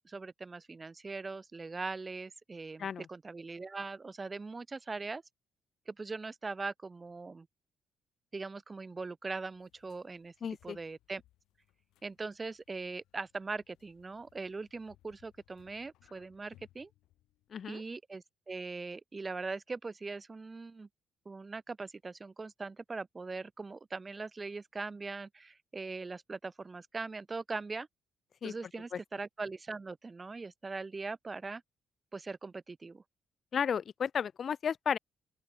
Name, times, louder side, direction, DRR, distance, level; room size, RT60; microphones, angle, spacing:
voice 1, 0.0-5.2 5.9-7.5 8.3-10.3 10.6-11.2 12.0-16.9 17.7-20.9 21.2-27.9 28.4-31.6 32.1-33.0, right 3 dB, 25° right, 1.3 m, -41 dB
sound 1, 9.2-17.7, left 15 dB, 90° left, 6.5 m, -68 dB
voice 2, 10.4-10.8 17.5-17.8 28.4-28.5 28.9-29.0 33.5-35.0, left 7 dB, 50° left, 1.4 m, -33 dB
open air
cardioid pair, 90°, 0 cm